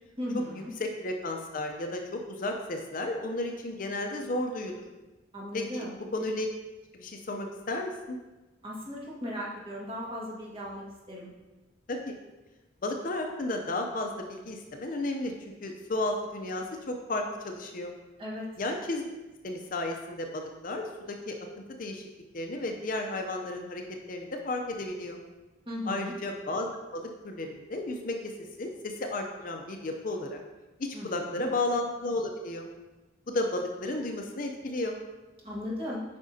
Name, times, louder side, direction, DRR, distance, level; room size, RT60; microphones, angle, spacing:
voice 1, 0.2-0.7 5.3-6.0 8.6-11.3 18.2-18.5 25.7-26.1 30.9-31.5 35.4-36.0, left 1 dB, 30° right, -5 dB, 1.6 m, -37 dB
voice 2, 0.8-4.8 5.5-5.9 6.1-6.5 6.9-8.2 11.9-12.1 12.8-15.3 15.6-17.9 18.6-19.0 19.4-21.4 21.8-22.1 22.3-23.8 24.1-25.2 25.9-28.3 28.6-30.4 30.8-32.7 33.3-35.0, left 2 dB, 45° left, 3 dB, 0.6 m, -33 dB
8.5 x 5.1 x 2.7 m, 1.1 s
head